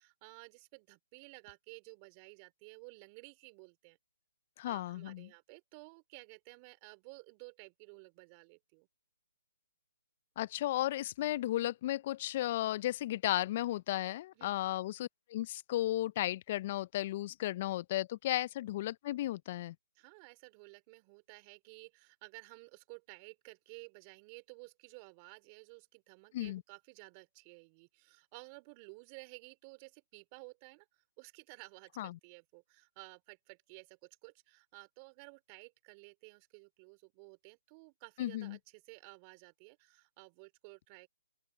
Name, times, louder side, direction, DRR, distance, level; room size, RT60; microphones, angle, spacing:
voice 1, 0.0-4.0 4.6-8.9 14.4-14.5 20.0-41.1, right 32 dB, 25° right, 4.2 m, -54 dB
voice 2, 4.6-5.3 10.4-19.8 26.3-26.6 32.0-32.2 38.2-38.6, left 14 dB, 35° left, 0.4 m, -34 dB
open air
hypercardioid pair, 150°, 0 cm